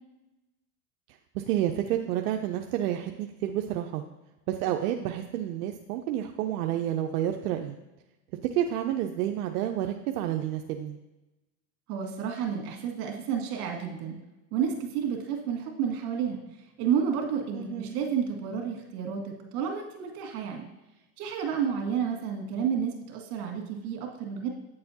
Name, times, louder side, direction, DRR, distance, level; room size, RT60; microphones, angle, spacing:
voice 1, 1.3-4.0 4.5-7.8 8.5-11.0 17.5-18.0, right 11 dB, 90° right, 4 dB, 0.6 m, -30 dB
voice 2, 11.9-14.2 14.5-16.4 16.8-20.6 21.2-24.5, right 7 dB, 65° right, 1 dB, 1.8 m, -30 dB
8.7 x 6.7 x 2.8 m, 1.0 s
supercardioid pair, 125°, 45 cm